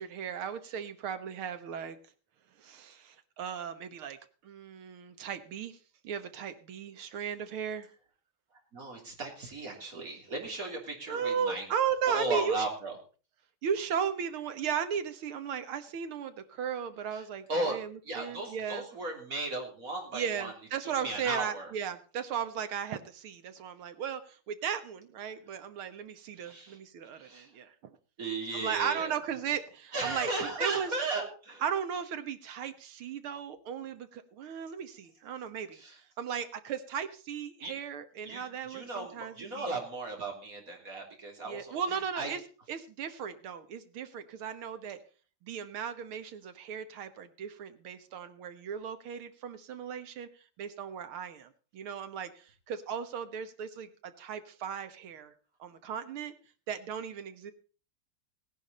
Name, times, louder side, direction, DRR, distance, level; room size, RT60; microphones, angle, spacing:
voice 1, 0.0-2.0 2.6-4.2 4.4-5.8 6.0-7.9 11.1-12.6 13.6-18.8 20.1-28.0 28.5-30.3 30.6-30.9 31.6-35.8 36.2-39.8 41.4-42.4 42.7-45.0 45.4-50.3 50.6-55.3 55.6-56.3 56.7-57.5, right 7 dB, 75° right, 10 dB, 2.0 m, -36 dB
voice 2, 8.7-11.7 12.1-13.0 17.1-20.5 20.8-21.7 26.4-26.8 27.1-27.5 28.2-29.1 29.9-31.6 35.7-36.0 37.6-37.7 38.2-42.3, right 2 dB, 40° right, 0 dB, 3.7 m, -36 dB
17.5 x 10.5 x 4.2 m, 0.37 s
omnidirectional pair, 2.4 m